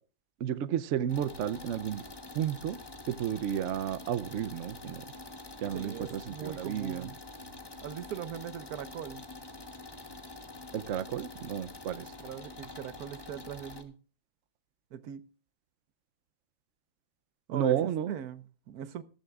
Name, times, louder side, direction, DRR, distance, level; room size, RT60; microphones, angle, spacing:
voice 1, 0.4-2.0 2.3-2.8 3.1-5.0 5.6-7.1 10.7-12.0 17.5-18.1, right 10 dB, 65° right, 0.9 m, -32 dB
sound 1, 1.1-13.8, left 2 dB, 20° left, 1.0 m, -46 dB
voice 2, 5.7-7.2 7.8-9.2 12.2-14.0 14.9-15.3 17.5-19.0, right 9 dB, 85° right, 1.3 m, -40 dB
14.5 x 14.0 x 2.4 m
omnidirectional pair, 1.6 m